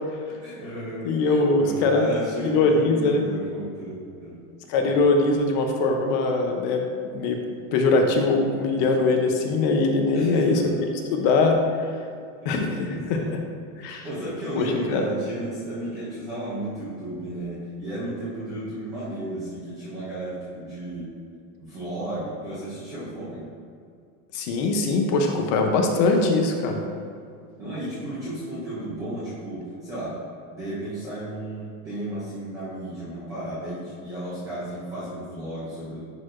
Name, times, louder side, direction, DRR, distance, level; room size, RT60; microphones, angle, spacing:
voice 1, 0.4-4.3 4.8-4.9 10.1-10.8 12.4-13.4 13.8-21.2 21.6-23.5 27.6-30.2 30.5-36.1, right 1 dB, 10° right, -11 dB, 0.3 m, -34 dB
voice 2, 1.0-2.1 2.5-3.3 4.7-6.8 7.1-7.4 7.7-10.6 11.1-11.6 12.4-13.4 13.8-14.1 14.6-15.0 24.3-26.8, left 3 dB, 35° left, 3 dB, 0.6 m, -22 dB
10.5 x 4.6 x 2.4 m, 2.4 s
supercardioid pair, 170°, 40 cm